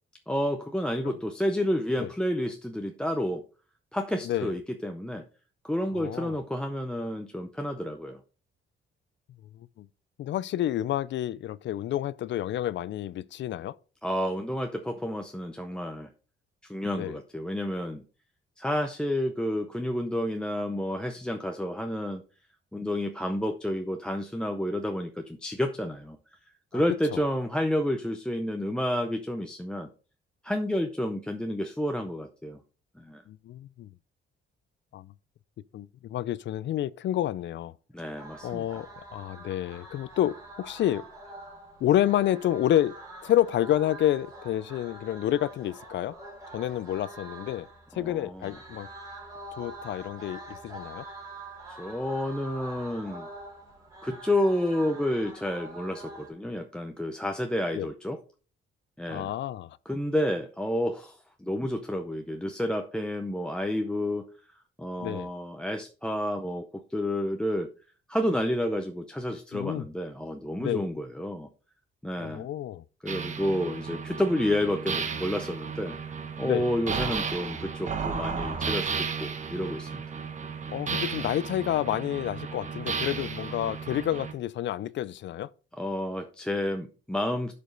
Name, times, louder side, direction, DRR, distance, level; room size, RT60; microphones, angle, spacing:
voice 1, 0.3-3.4 3.9-5.2 5.6-8.2 14.0-16.1 16.6-18.0 18.6-22.2 22.7-26.2 26.7-29.9 30.4-32.6 33.0-33.2 37.9-38.8 47.9-48.5 51.7-53.3 54.0-58.2 59.0-59.3 59.9-64.3 64.8-67.7 68.1-71.5 72.0-72.5 73.0-75.9 76.4-80.0 85.8-87.5, left 1 dB, 5° left, 0.6 m, -30 dB
voice 2, 5.9-6.4 9.5-9.9 10.2-13.8 16.9-17.2 26.7-27.2 33.3-33.9 34.9-35.1 35.7-37.7 38.4-41.0 41.8-43.0 43.2-46.1 46.5-47.7 47.9-48.9 49.6-51.0 57.7-57.9 59.1-59.8 65.0-65.3 69.5-69.8 70.6-70.9 72.2-72.8 76.4-76.7 80.7-85.5, left 12 dB, 60° left, 0.4 m, -29 dB
sound 1, 38.1-56.3, right 2 dB, 15° right, 2.7 m, -45 dB
sound 2, 73.1-84.3, right 5 dB, 35° right, 1.1 m, -34 dB
11.0 x 5.1 x 3.9 m
cardioid pair, 150°, 21 cm